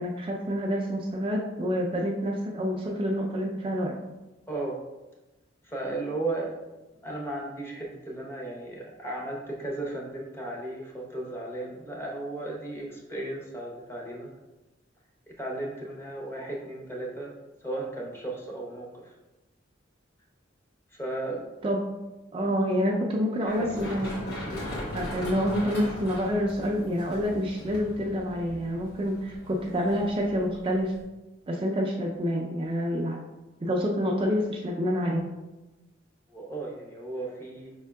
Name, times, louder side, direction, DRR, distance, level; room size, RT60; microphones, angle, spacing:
voice 1, 0.0-3.9 21.6-21.8 22.3-24.5 24.9-30.9 31.5-33.2 33.6-35.3, equal, 30° right, -1 dB, 0.4 m, -28 dB
voice 2, 4.5-4.8 5.6-6.6 7.0-14.3 15.3-17.3 17.6-19.1 20.9-21.4 23.5-23.9 36.3-37.7, right 2 dB, 15° left, -2 dB, 0.8 m, -35 dB
Run, 23.5-31.0, left 1 dB, 55° left, 1.5 m, -39 dB
5.4 x 3.6 x 2.2 m, 1.1 s
head